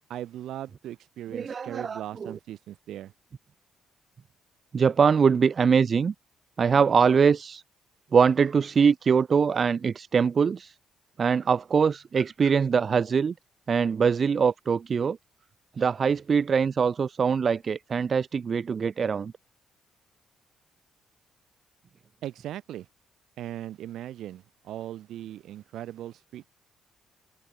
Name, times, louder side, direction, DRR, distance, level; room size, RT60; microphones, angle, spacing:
voice 1, 0.1-3.1 22.2-22.9 23.4-26.6, right 12 dB, 80° right, 4.3 m, -39 dB
voice 2, 1.3-2.3 4.7-6.1 6.6-7.6 8.1-10.7 11.2-13.3 13.7-15.2 15.8-19.3, right 6 dB, 45° right, 0.5 m, -23 dB
cardioid pair, 90°, 0 cm